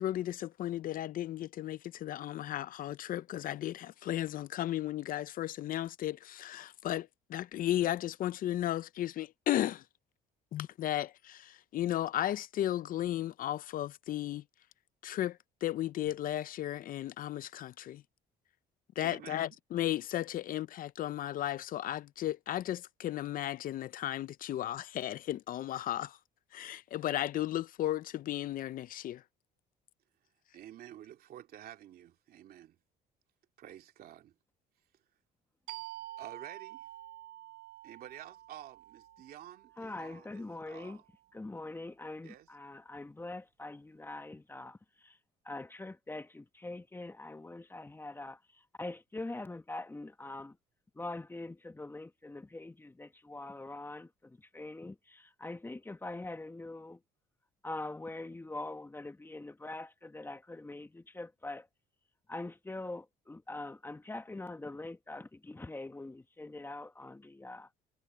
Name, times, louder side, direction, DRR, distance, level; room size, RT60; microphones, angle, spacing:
voice 1, 0.0-9.8 10.5-14.4 15.0-18.0 19.0-26.2 26.5-29.2, left 13 dB, 55° left, 0.5 m, -35 dB
voice 2, 19.0-19.6 30.5-32.8 33.6-34.4 36.2-36.9 37.8-41.0 42.2-42.5, right 11 dB, 65° right, 2.8 m, -50 dB
sound 1, 35.7-41.0, right 15 dB, 80° right, 4.7 m, -49 dB
voice 3, 39.8-41.0 41.3-45.2 45.4-50.6 50.9-57.0 57.6-61.7 62.3-67.7, left 2 dB, 15° left, 1.3 m, -43 dB
cardioid pair, 110°, 17 cm